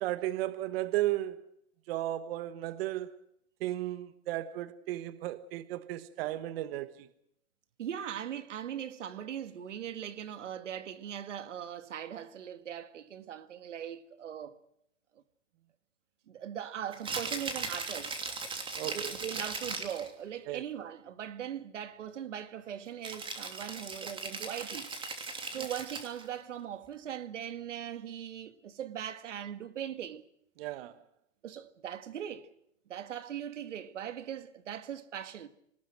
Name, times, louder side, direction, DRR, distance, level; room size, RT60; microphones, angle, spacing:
voice 1, 0.0-1.4 1.9-3.1 3.6-7.1 18.8-19.1 20.5-20.6 25.6-25.7 30.6-30.9, right 15 dB, 55° right, 1.4 m, -34 dB
voice 2, 7.8-14.6 16.3-18.2 18.8-24.9 25.5-30.3 31.4-32.5 32.9-35.5, right 9 dB, 90° right, 2.0 m, -40 dB
Rattle (instrument), 16.9-20.1 23.0-26.3, right 4 dB, 15° right, 3.1 m, -38 dB
25.0 x 19.5 x 7.8 m
hypercardioid pair, 135°, 35 cm